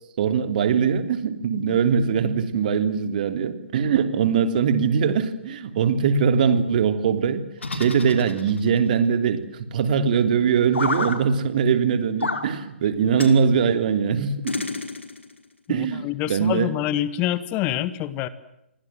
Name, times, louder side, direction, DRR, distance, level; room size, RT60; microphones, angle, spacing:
voice 1, 0.2-14.6 15.7-16.7, right 6 dB, 45° right, 10 dB, 3.2 m, -22 dB
sound 1, 7.6-8.8 10.7-11.2 12.2-12.5 13.2-13.4 14.5-15.3, left 3 dB, 75° left, 5.2 m, -29 dB
voice 2, 15.7-18.3, left 12 dB, 25° left, 15 dB, 1.8 m, -26 dB
29.0 x 24.5 x 7.6 m, 0.85 s
figure-of-eight pair, 130°, 6 cm